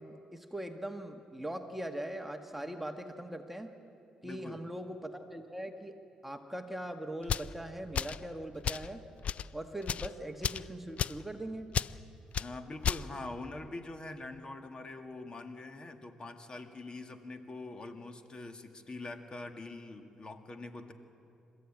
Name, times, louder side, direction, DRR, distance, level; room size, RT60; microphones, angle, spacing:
voice 1, 0.0-3.7 4.2-9.0 9.5-11.8, right 1 dB, 5° right, 5 dB, 1.4 m, -41 dB
voice 2, 4.2-4.6 12.4-20.9, left 2 dB, 35° left, 5 dB, 1.9 m, -44 dB
sound 1, 7.2-7.5 7.9-8.2 8.6-8.9 9.2-9.5 9.8-10.1 10.4-10.7 11.0-11.2 11.7-11.9 12.3-12.5 12.8-13.0, left 8 dB, 55° left, 0.4 m, -32 dB
27.5 x 14.0 x 8.8 m, 2.6 s
cardioid pair, 80°, 3 cm